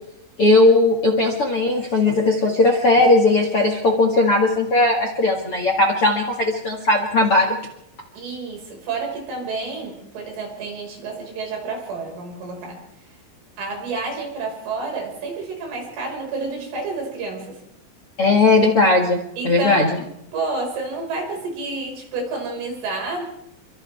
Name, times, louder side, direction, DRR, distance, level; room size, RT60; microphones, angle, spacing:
voice 1, 0.4-7.6 18.2-19.9, left 2 dB, 45° left, 2 dB, 2.0 m, -17 dB
voice 2, 8.2-12.8 13.6-17.6 19.4-23.2, right 3 dB, 80° right, 0 dB, 8.1 m, -29 dB
29.5 x 24.0 x 3.6 m, 0.79 s
omnidirectional pair, 5.6 m